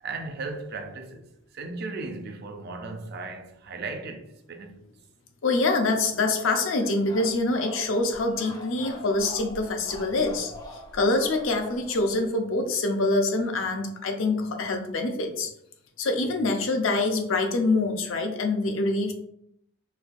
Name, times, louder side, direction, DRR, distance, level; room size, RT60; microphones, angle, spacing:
voice 1, 0.0-1.3 1.5-4.8, right 3 dB, 50° right, 0.4 m, -36 dB
voice 2, 5.4-15.5 16.0-19.1, left 2 dB, 75° left, 0.5 m, -25 dB
sound 1, 6.8-12.3, left 1 dB, 20° left, 0.5 m, -44 dB
4.1 x 2.3 x 2.5 m
head